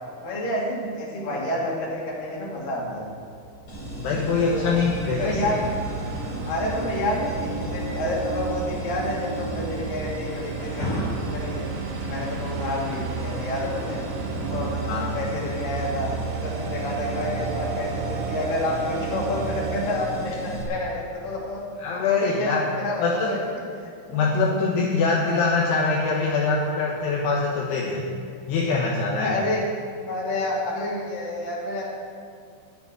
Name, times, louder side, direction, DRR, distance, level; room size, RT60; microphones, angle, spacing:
voice 1, 0.2-3.1 4.5-4.8 5.1-5.6 6.4-11.7 12.1-14.0 14.5-16.1 16.4-21.6 22.0-23.4 23.8-24.2 25.4-25.6 29.2-29.7 30.1-31.8, left 1 dB, 55° left, -3 dB, 4.0 m, -29 dB
sound 1, 2.7-2.8 3.0-20.4, right 5 dB, 80° right, 3.2 m, -33 dB
sound 2, 3.7-20.6, equal, 35° left, 3.0 m, -34 dB
voice 2, 4.0-5.6 14.9-15.1 21.8-22.7 23.0-23.4 24.1-28.1 28.5-29.4, left 4 dB, 75° left, -2 dB, 3.2 m, -23 dB
14.5 x 7.1 x 9.9 m, 2.4 s
omnidirectional pair, 5.2 m